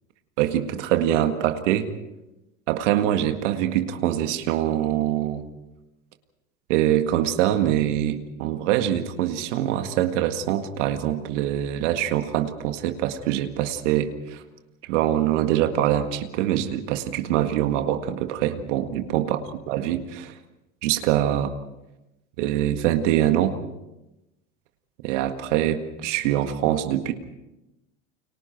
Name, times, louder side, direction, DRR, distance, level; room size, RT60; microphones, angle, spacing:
voice 1, 0.4-1.9 2.7-5.4 6.7-14.4 14.9-19.4 19.7-20.3 20.8-21.5 22.4-23.6 25.0-27.1, right 12 dB, 70° right, 7 dB, 1.9 m, -24 dB
30.0 x 24.0 x 4.5 m, 0.97 s
hypercardioid pair, 95°, 38 cm